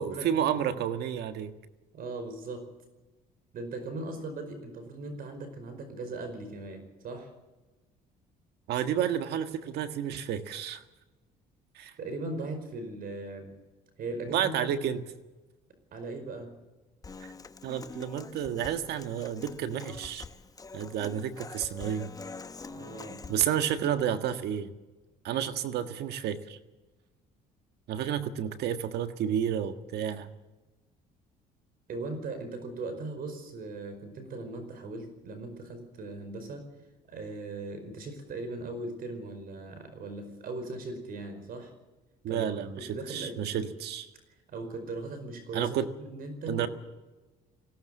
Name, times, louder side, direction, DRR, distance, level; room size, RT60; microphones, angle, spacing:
voice 1, 0.0-1.5 8.7-10.8 11.7-11.9 14.3-15.0 17.2-17.3 17.6-20.2 20.7-22.1 23.3-24.7 25.2-26.6 27.9-30.3 42.2-44.1 45.5-45.9 46.5-46.7, right 9 dB, 75° right, 9 dB, 1.6 m, -31 dB
voice 2, 1.9-2.6 3.5-7.3 12.0-13.5 14.0-14.7 15.9-16.5 22.7-23.2 31.9-36.6 37.1-41.7 42.3-43.6 44.5-46.7, right 2 dB, 60° right, 8 dB, 5.0 m, -39 dB
Human voice / Acoustic guitar, 17.0-23.4, left 4 dB, 20° left, 1.0 m, -45 dB
20.0 x 17.0 x 7.8 m, 1.1 s
cardioid pair, 110°, 17 cm